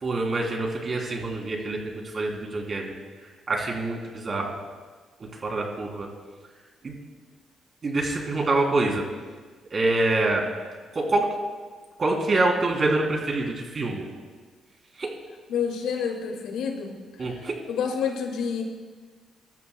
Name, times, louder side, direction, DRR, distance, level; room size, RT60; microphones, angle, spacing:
voice 1, 0.0-1.8 2.1-2.9 3.5-4.5 5.2-6.1 6.8-6.9 7.8-9.0 9.7-10.4 10.9-11.3 12.0-14.1 15.0-15.1 17.2-17.6, right 2 dB, 40° right, 0 dB, 3.0 m, -25 dB
voice 2, 15.5-18.6, left 6 dB, 90° left, 1 dB, 2.1 m, -29 dB
20.0 x 14.0 x 2.2 m, 1.4 s
cardioid pair, 90°, 0 cm